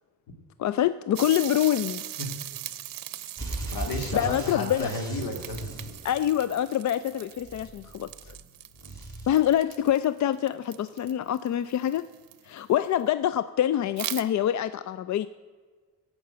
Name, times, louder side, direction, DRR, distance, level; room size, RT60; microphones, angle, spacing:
voice 1, 0.6-2.0 4.1-4.9 6.0-8.3 9.3-12.1 12.5-15.3, left 11 dB, 50° left, 15 dB, 0.4 m, -25 dB
sound 1, 1.2-12.6 14.0-14.2, right 13 dB, 65° right, 0.7 m, -40 dB
sound 2, 3.4-6.7 7.4-8.5 8.7-9.4, right 2 dB, 10° left, 3.6 m, -37 dB
voice 2, 3.7-5.6, left 2 dB, 70° left, 4 dB, 2.3 m, -32 dB
17.5 x 6.0 x 7.7 m, 1.6 s
cardioid pair, 85°, 36 cm